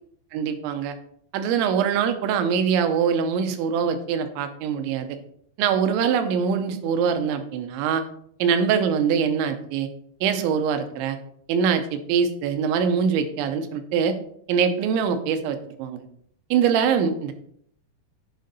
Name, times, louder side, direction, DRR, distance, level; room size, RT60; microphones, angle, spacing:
voice 1, 0.3-0.9 1.3-5.2 5.6-8.0 8.4-9.9 10.2-11.2 11.5-14.2 14.5-16.0 16.5-17.3, right 7 dB, 85° right, 8 dB, 3.0 m, -23 dB
10.5 x 5.3 x 4.0 m, 0.67 s
omnidirectional pair, 5.5 m